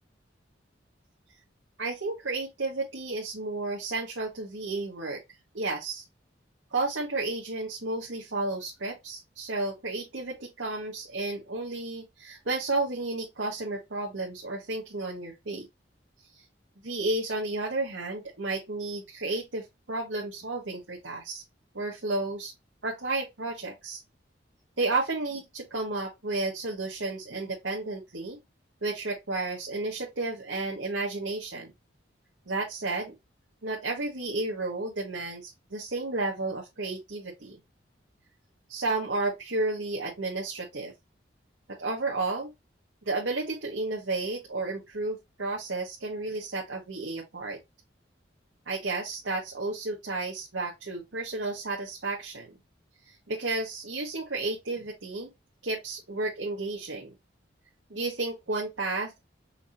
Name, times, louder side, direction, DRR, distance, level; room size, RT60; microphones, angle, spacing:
voice 1, 1.8-5.2 5.5-6.0 6.7-15.7 16.3-16.4 16.8-21.4 21.7-22.5 22.8-24.0 24.8-28.4 28.8-31.7 32.5-33.1 33.6-37.6 38.7-40.9 41.7-42.5 43.0-47.6 48.7-52.6 53.1-55.3 55.6-57.1 57.9-59.2, right 2 dB, 80° right, 1.3 m, -32 dB
5.7 x 2.8 x 2.7 m
head